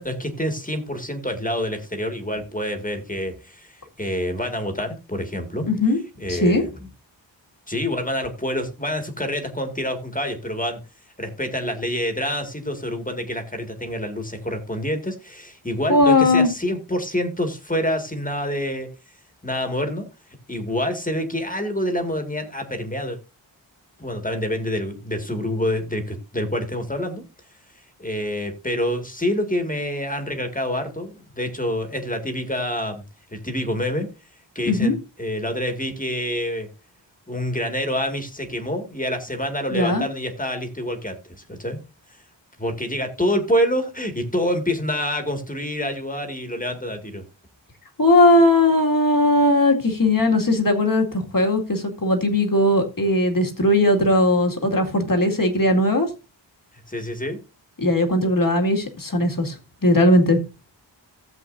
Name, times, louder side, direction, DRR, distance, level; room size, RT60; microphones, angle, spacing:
voice 1, 0.0-5.7 6.2-6.8 7.7-10.8 11.2-18.9 19.4-23.2 24.0-27.2 27.7-33.0 33.3-34.1 34.6-36.7 37.3-41.8 42.1-42.2 42.6-47.2 56.7-57.4, equal, 15° left, 5 dB, 2.0 m, -27 dB
voice 2, 5.7-6.0 6.3-6.6 15.9-16.5 34.7-35.0 39.7-40.1 48.0-56.1 57.8-59.6 59.8-60.4, left 1 dB, 45° left, 3 dB, 2.2 m, -18 dB
15.0 x 7.6 x 2.6 m, 0.28 s
wide cardioid pair, 85°, 46 cm